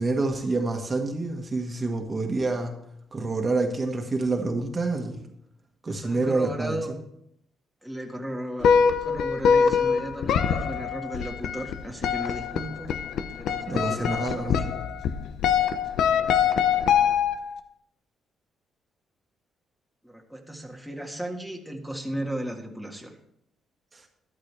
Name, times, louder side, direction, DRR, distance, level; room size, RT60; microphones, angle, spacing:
voice 1, 0.0-2.7 3.1-5.2 5.8-6.8 13.7-14.6 23.9-24.0, right 3 dB, 30° right, 3 dB, 1.7 m, -27 dB
voice 2, 5.9-6.9 7.8-8.7 9.0-13.0 13.4-14.7 20.0-23.1, right 1 dB, ahead, 1 dB, 1.9 m, -35 dB
sound 1, 8.6-17.6, left 7 dB, 80° left, 0.8 m, -24 dB
13.0 x 11.5 x 3.5 m, 0.75 s
cardioid pair, 90°, 0 cm